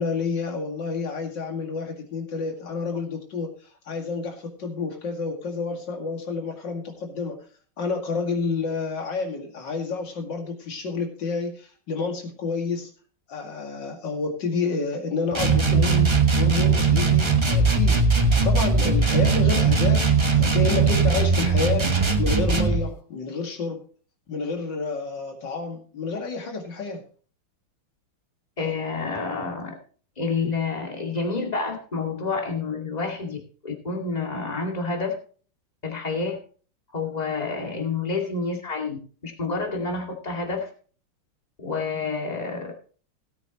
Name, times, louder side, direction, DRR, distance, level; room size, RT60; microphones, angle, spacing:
voice 1, 0.0-3.5 3.8-7.4 7.8-12.9 13.3-18.0 18.3-23.8 24.3-27.0, left 4 dB, 60° left, 3 dB, 2.7 m, -29 dB
sound 1, 15.3-22.8, right 4 dB, 25° right, 0.6 m, -20 dB
voice 2, 28.6-29.7 30.2-33.4 33.6-35.1 35.8-36.4 36.9-40.7 41.6-42.7, left 4 dB, 20° left, 1 dB, 2.1 m, -28 dB
17.0 x 8.8 x 3.0 m, 0.41 s
omnidirectional pair, 2.3 m